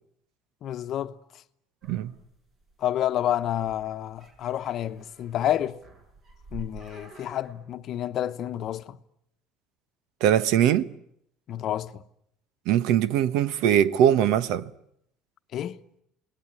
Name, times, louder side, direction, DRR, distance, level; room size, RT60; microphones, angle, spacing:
voice 1, 0.6-1.2 2.8-5.8 6.5-9.0 11.5-12.0 15.5-15.8, left 11 dB, 45° left, 1.0 m, -29 dB
sound 1, 1.8-7.5, right 2 dB, 40° right, 6.6 m, -48 dB
voice 2, 10.2-10.9 12.7-14.7, right 10 dB, 70° right, 1.1 m, -21 dB
28.5 x 19.5 x 9.8 m
cardioid pair, 145°, 0 cm